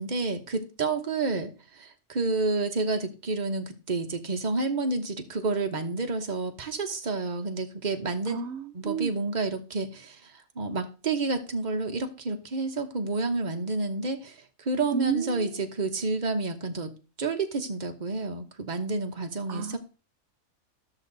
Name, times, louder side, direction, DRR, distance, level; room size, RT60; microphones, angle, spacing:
voice 1, 0.0-8.4 8.7-10.2 10.6-19.8, right 3 dB, 30° right, 1.2 m, -30 dB
voice 2, 8.3-9.2 14.9-15.6 19.5-19.8, right 8 dB, 60° right, 0.9 m, -32 dB
13.0 x 6.5 x 4.0 m
omnidirectional pair, 1.6 m